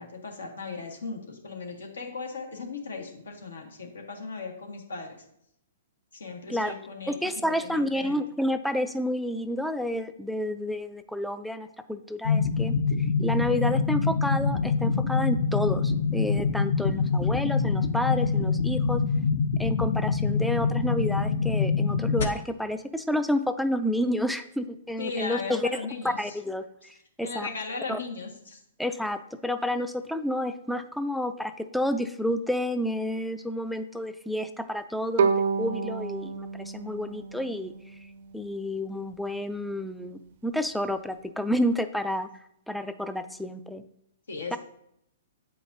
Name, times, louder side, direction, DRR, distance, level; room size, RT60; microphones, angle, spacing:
voice 1, 0.0-5.2 6.1-8.2 16.8-17.0 25.0-26.3 27.2-28.6 44.3-44.6, left 4 dB, 85° left, 2 dB, 1.5 m, -37 dB
voice 2, 7.1-19.0 19.6-27.5 27.9-28.0 28.8-35.3 35.6-37.7 38.3-42.3 42.7-43.8 44.5-44.6, left 1 dB, ahead, 9 dB, 0.3 m, -30 dB
sound 1, 12.2-22.2, left 5 dB, 65° left, 0.8 m, -25 dB
Bowed string instrument, 35.2-38.2, right 5 dB, 60° right, 0.5 m, -29 dB
8.2 x 4.7 x 2.6 m, 0.74 s
hypercardioid pair, 125°, 0 cm